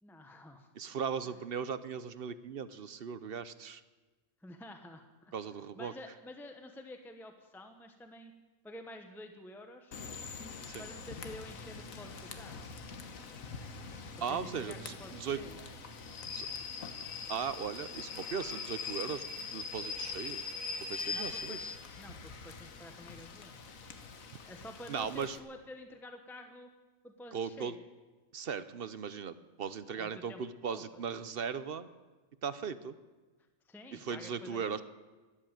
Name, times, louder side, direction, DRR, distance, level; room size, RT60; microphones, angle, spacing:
voice 1, 0.0-0.7 1.2-1.4 4.4-5.3 5.7-8.3 8.6-10.0 10.8-12.7 14.2-15.6 21.1-23.7 24.5-26.7 27.0-27.8 30.0-30.4 30.7-31.0 33.6-34.8, left 1 dB, ahead, 5 dB, 1.0 m, -50 dB
voice 2, 0.8-3.8 5.3-5.9 10.7-10.8 14.2-15.4 16.3-16.5 17.3-20.4 20.9-21.7 24.9-25.4 27.3-27.7 28.3-31.9 32.4-32.9 33.9-34.8, right 6 dB, 55° right, 13 dB, 0.8 m, -38 dB
Rain / Train, 9.9-25.4, left 5 dB, 75° left, 1.6 m, -43 dB
13.0 x 12.0 x 9.0 m, 1.3 s
omnidirectional pair, 1.4 m